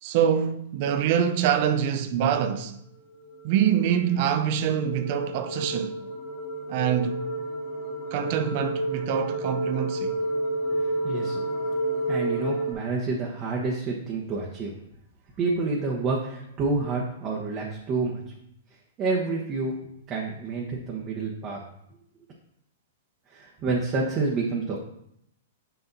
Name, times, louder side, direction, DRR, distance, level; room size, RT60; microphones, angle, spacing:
voice 1, 0.0-2.7 3.4-6.0 6.7-7.2 8.1-10.2, right 9 dB, 50° right, 0.5 m, -25 dB
sound 1, 3.1-12.7, right 1 dB, 40° left, 2.4 m, -30 dB
voice 2, 11.0-11.4 12.1-14.7 15.4-18.2 19.0-19.7 20.1-21.6 23.3-24.8, right 3 dB, 30° right, 1.0 m, -28 dB
6.6 x 5.9 x 2.7 m
hypercardioid pair, 120°, 0 cm